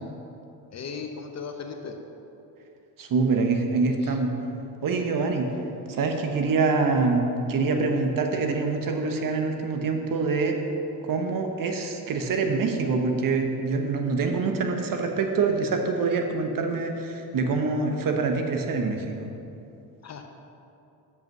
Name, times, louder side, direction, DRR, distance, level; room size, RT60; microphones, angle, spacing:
voice 1, 0.7-1.9 20.0-20.2, left 5 dB, 35° left, 5 dB, 0.8 m, -36 dB
voice 2, 3.0-4.3 4.8-5.5 5.9-10.6 11.0-19.3, right 4 dB, 45° right, 4 dB, 1.0 m, -25 dB
7.2 x 5.4 x 6.0 m, 2.8 s
supercardioid pair, 75°, 46 cm